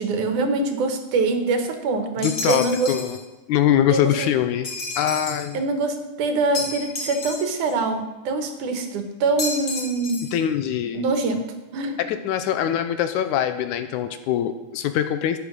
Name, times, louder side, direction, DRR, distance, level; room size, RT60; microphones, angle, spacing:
voice 1, 0.0-2.9 3.9-4.3 5.5-10.3 10.9-12.0, right 3 dB, 70° right, 6 dB, 2.7 m, -24 dB
voice 2, 2.2-3.2 3.5-5.6 10.3-11.1 12.0-15.4, left 10 dB, 80° left, 10 dB, 2.0 m, -23 dB
sound 1, 2.2-3.2 4.6-5.5 6.5-7.7 9.4-10.4, left 3 dB, 35° left, 2.4 m, -31 dB
13.0 x 9.9 x 6.3 m, 1.1 s
omnidirectional pair, 3.8 m